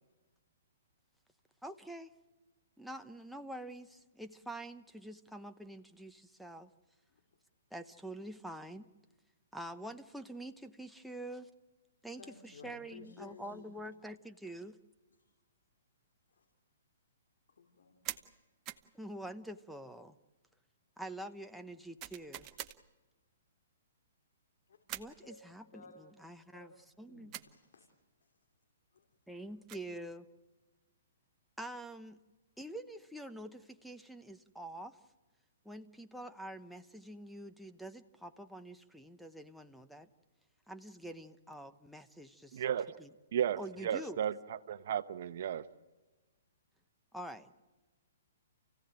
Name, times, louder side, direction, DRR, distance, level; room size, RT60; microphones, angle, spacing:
voice 1, 1.6-2.1 2.8-6.7 7.7-8.9 9.5-11.5 12.0-14.8 18.9-20.2 21.0-22.5 24.9-25.8 26.2-26.7 27.0-27.3 29.3-30.3 31.6-32.2 32.6-35.0 35.6-40.1 40.7-42.6 43.0-43.1 43.6-44.2 47.1-47.5, right 1 dB, ahead, 0.9 m, -46 dB
voice 2, 12.2-13.7 15.2-15.3 16.3-16.5 17.6-18.3 24.7-24.8 25.2-25.4 25.7-26.1 26.5-26.7 27.1-27.9 28.2-28.3 28.9-29.4, left 4 dB, 75° left, 3.3 m, -56 dB
sound 1, 18.0-18.3 18.7-18.9 22.0-22.8 24.9-25.2 27.3-27.5 29.4-29.9, right 13 dB, 30° right, 0.9 m, -44 dB
voice 3, 42.5-43.0 43.3-45.7, right 9 dB, 60° right, 1.0 m, -34 dB
29.0 x 16.5 x 8.9 m
hypercardioid pair, 140°, 0 cm